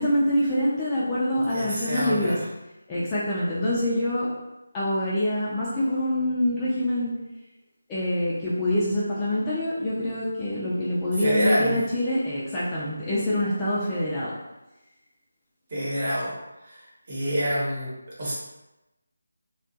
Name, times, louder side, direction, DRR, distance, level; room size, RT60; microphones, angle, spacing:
voice 1, 0.0-2.4 2.9-4.3 4.7-7.1 7.9-14.3, left 1 dB, 15° left, -9 dB, 0.4 m, -25 dB
voice 2, 1.5-2.5 11.2-11.8 15.7-16.3 16.6-18.3, equal, 35° right, -7 dB, 1.0 m, -27 dB
2.8 x 2.3 x 2.6 m, 0.99 s
figure-of-eight pair, 165°, 0 cm